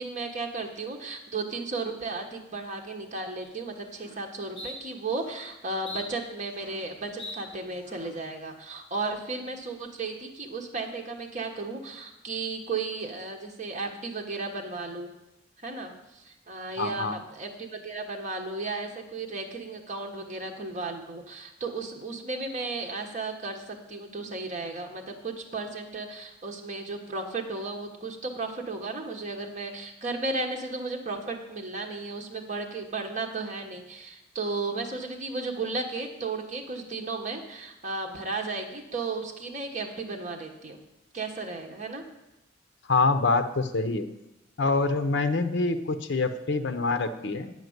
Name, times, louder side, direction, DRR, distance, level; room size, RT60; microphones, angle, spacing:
voice 1, 0.0-15.1 15.6-40.8 41.1-42.0, right 3 dB, 40° right, 2 dB, 1.3 m, -34 dB
sound 1, 3.4-3.5 3.9-4.2 4.6-4.7 5.2-5.5 5.9-6.9 7.2-7.4 7.8-8.2, left 2 dB, 30° left, 2.4 m, -42 dB
voice 2, 16.8-17.1 42.8-44.1 44.6-47.5, left 3 dB, 65° left, 9 dB, 0.7 m, -25 dB
9.3 x 5.1 x 8.0 m, 0.92 s
head